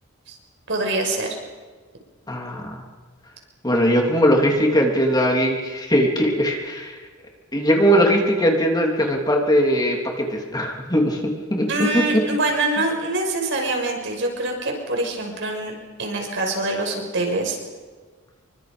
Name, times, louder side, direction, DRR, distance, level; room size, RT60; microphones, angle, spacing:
voice 1, 0.7-1.3 11.7-15.7 16.0-17.6, right 2 dB, 55° right, 2 dB, 6.2 m, -24 dB
voice 2, 2.3-2.8 3.6-7.0 7.5-11.7 11.9-12.0, equal, 20° left, 1 dB, 3.3 m, -20 dB
28.5 x 24.5 x 5.3 m, 1.4 s
head